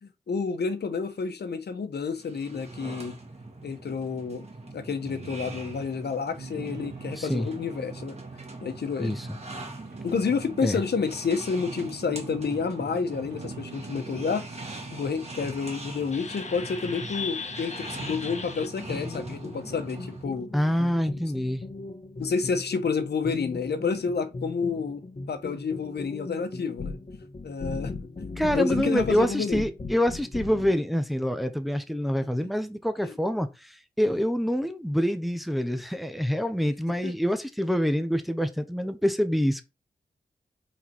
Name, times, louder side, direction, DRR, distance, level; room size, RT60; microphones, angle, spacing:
voice 1, 0.0-3.2 3.6-4.5 4.7-8.1 8.6-9.2 10.0-14.5 14.9-20.5 22.2-27.0 27.4-29.6 33.0-33.1 37.0-37.1, left 5 dB, 90° left, 1.0 m, -30 dB
sound 1, 2.2-20.2, right 2 dB, 40° right, 2.2 m, -42 dB
sound 2, 5.1-6.0 6.3-9.4 9.7-12.9 13.2-15.9, right 4 dB, 75° right, 1.7 m, -45 dB
voice 2, 7.2-7.5 9.0-9.3 10.6-10.8 20.5-21.6 28.4-39.6, equal, ahead, 0.9 m, -26 dB
sound 3, 16.1-30.8, left 3 dB, 45° left, 1.2 m, -38 dB
5.2 x 4.2 x 4.5 m
wide cardioid pair, 85°, 17 cm